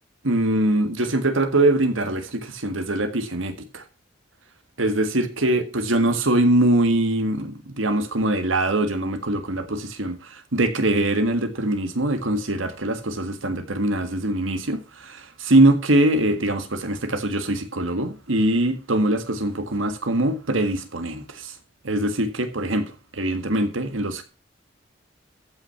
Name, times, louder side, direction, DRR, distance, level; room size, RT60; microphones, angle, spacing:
voice 1, 0.2-3.8 4.8-21.5 21.8-24.2, right 1 dB, 85° right, 1.7 m, -22 dB
14.0 x 6.0 x 5.8 m
head